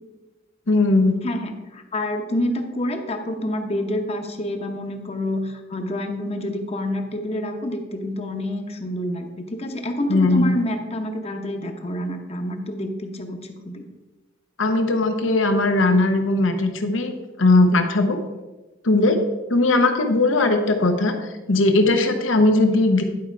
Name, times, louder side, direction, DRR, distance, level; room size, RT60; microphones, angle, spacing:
voice 1, 0.7-1.2 10.1-10.6 14.6-17.1 17.4-18.2 18.8-19.2 19.5-21.1 21.5-23.0, left 2 dB, 90° left, 6 dB, 1.0 m, -18 dB
voice 2, 1.2-13.9, left 1 dB, 35° left, 5 dB, 0.9 m, -28 dB
10.5 x 4.8 x 4.6 m, 1.2 s
head